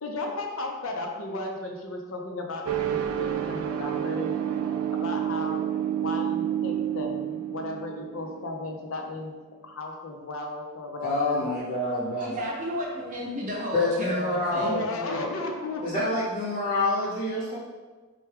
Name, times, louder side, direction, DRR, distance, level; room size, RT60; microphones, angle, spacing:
voice 1, 0.0-4.3 4.9-5.6 6.0-9.3 9.6-11.5 14.6-16.1, left 2 dB, 70° left, 2 dB, 0.5 m, -35 dB
sound 1, 2.6-9.0, right 10 dB, 80° right, 0.3 m, -29 dB
voice 2, 11.0-12.3 13.7-15.4 15.8-17.6, left 2 dB, 25° left, -12 dB, 0.8 m, -27 dB
voice 3, 12.2-14.9, equal, 35° right, -3 dB, 0.6 m, -32 dB
4.4 x 2.2 x 3.3 m, 1.3 s
head